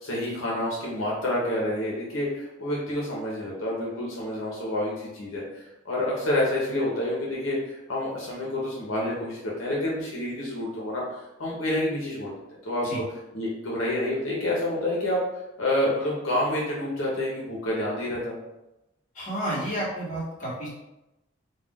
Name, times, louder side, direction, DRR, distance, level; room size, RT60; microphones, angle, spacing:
voice 1, 0.0-12.3 12.6-12.9 13.3-15.2 15.6-18.4, left 1 dB, 80° left, -4 dB, 0.7 m, -28 dB
voice 2, 19.1-20.7, right 1 dB, 40° left, -7 dB, 1.0 m, -31 dB
2.4 x 2.2 x 3.4 m, 0.94 s
head